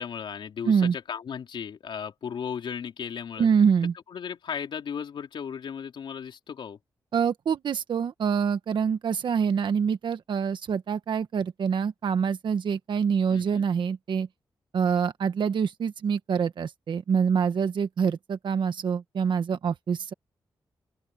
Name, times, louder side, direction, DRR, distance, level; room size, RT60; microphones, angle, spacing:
voice 1, 0.0-3.5 4.1-6.8 13.3-13.6, left 7 dB, 75° left, 3.7 m, -36 dB
voice 2, 0.6-0.9 3.4-3.9 7.1-14.3 14.7-20.1, right 6 dB, 70° right, 1.3 m, -25 dB
open air
cardioid pair, 65°, 8 cm